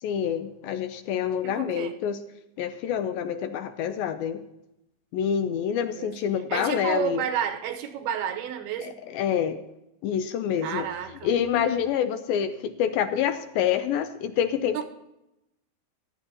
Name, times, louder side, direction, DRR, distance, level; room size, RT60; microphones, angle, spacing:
voice 1, 0.0-2.2 2.6-4.4 5.1-7.2 8.8-9.6 10.0-10.9 11.2-14.8, left 8 dB, 80° left, 9 dB, 2.3 m, -27 dB
voice 2, 1.4-1.9 5.9-6.1 6.5-9.0 10.6-11.3 14.7-14.8, right 8 dB, 85° right, 7 dB, 2.8 m, -31 dB
15.0 x 11.5 x 2.9 m, 0.87 s
omnidirectional pair, 4.5 m